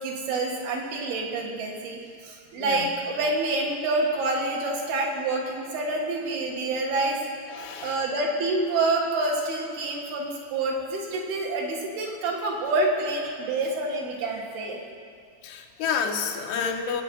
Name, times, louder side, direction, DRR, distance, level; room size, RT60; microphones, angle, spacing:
voice 1, 0.0-7.2 7.5-14.8, right 2 dB, 70° right, -1 dB, 3.5 m, -27 dB
voice 2, 2.6-2.9 7.5-8.0 15.4-17.0, left 6 dB, 85° left, 3 dB, 3.3 m, -29 dB
24.0 x 8.6 x 5.4 m, 2.3 s
omnidirectional pair, 4.7 m